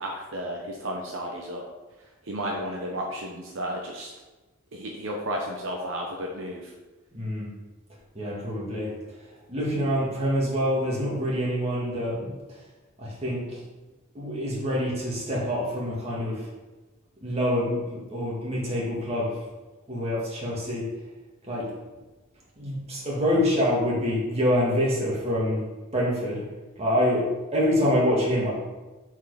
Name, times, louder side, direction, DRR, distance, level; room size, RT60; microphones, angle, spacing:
voice 1, 0.0-1.6 2.3-4.1 4.7-6.6, equal, 65° right, 0 dB, 0.9 m, -33 dB
voice 2, 7.1-7.5 8.1-8.9 9.5-12.3 13.0-13.6 14.1-16.5 17.2-19.4 19.9-20.9 21.5-21.7 22.6-25.7 25.9-26.4 26.8-28.5, equal, 30° right, -5 dB, 2.2 m, -26 dB
7.2 x 4.7 x 5.0 m, 1.2 s
head